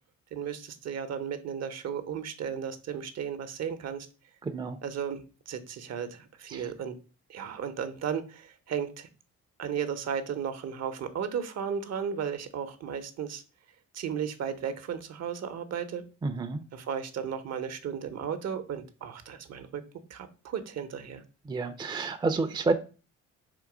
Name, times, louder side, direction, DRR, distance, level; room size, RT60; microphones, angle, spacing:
voice 1, 0.3-4.1 4.8-7.0 7.3-9.1 9.6-13.4 13.9-16.0 16.7-19.8 20.1-21.2, right 7 dB, 60° right, 10 dB, 0.7 m, -35 dB
voice 2, 4.4-4.8 6.5-6.7 16.2-16.6 21.5-22.7, right 3 dB, 15° right, 7 dB, 0.4 m, -29 dB
3.8 x 2.9 x 4.9 m, 0.35 s
cardioid pair, 90°, 30 cm